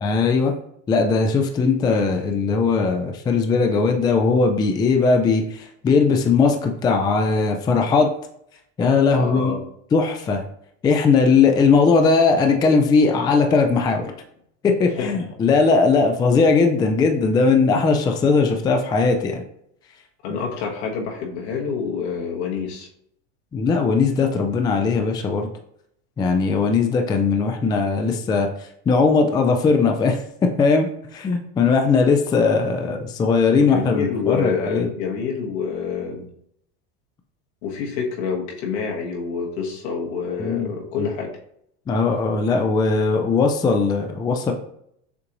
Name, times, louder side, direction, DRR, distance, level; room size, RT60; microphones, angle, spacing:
voice 1, 0.0-0.5 0.9-8.1 8.8-9.6 9.9-10.4 10.8-14.1 14.6-19.4 20.3-20.4 23.5-25.5 26.2-28.5 28.9-34.9 40.4-40.7 41.0-41.1 41.9-44.5, left 4 dB, 15° left, 4 dB, 0.3 m, -19 dB
voice 2, 9.1-9.7 14.9-15.3 20.2-22.9 33.6-36.3 37.6-41.3, left 6 dB, 75° left, -1 dB, 1.4 m, -27 dB
6.7 x 2.5 x 3.0 m, 0.71 s
supercardioid pair, 125°, 34 cm